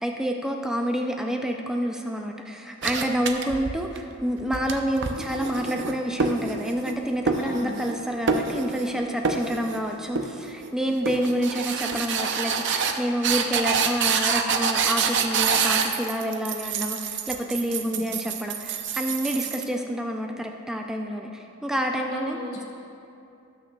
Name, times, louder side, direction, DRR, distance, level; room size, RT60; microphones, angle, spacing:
voice 1, 0.0-22.4, equal, 5° right, 2 dB, 0.4 m, -28 dB
sound 1, 2.8-4.0 4.4-7.0 7.3-8.0 8.3-8.9 9.2-9.8 10.2-10.7 11.1-19.6, right 5 dB, 55° right, 0.6 m, -27 dB
voice 2, 7.4-7.7 17.9-18.0 21.9-22.7, left 2 dB, 80° left, -2 dB, 1.9 m, -39 dB
18.0 x 6.3 x 2.3 m, 2.7 s
head